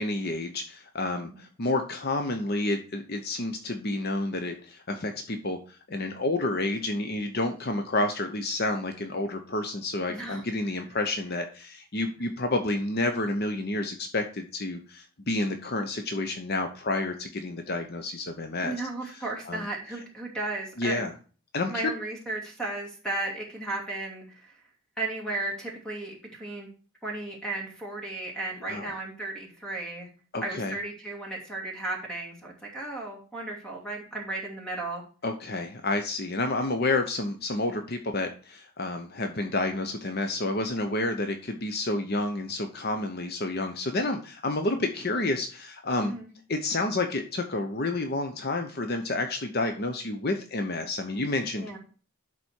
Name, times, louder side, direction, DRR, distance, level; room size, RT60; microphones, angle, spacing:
voice 1, 0.0-19.7 20.8-21.1 21.5-21.8 28.6-28.9 30.3-30.7 35.2-46.1 46.5-51.7, left 2 dB, 45° left, 6 dB, 0.8 m, -30 dB
voice 2, 10.1-10.4 18.6-21.0 21.7-24.5 25.0-26.7 27.0-30.1 30.4-35.0 46.0-46.3 51.5-51.8, right 2 dB, 5° left, -1 dB, 2.7 m, -35 dB
11.0 x 4.3 x 4.5 m, 0.38 s
head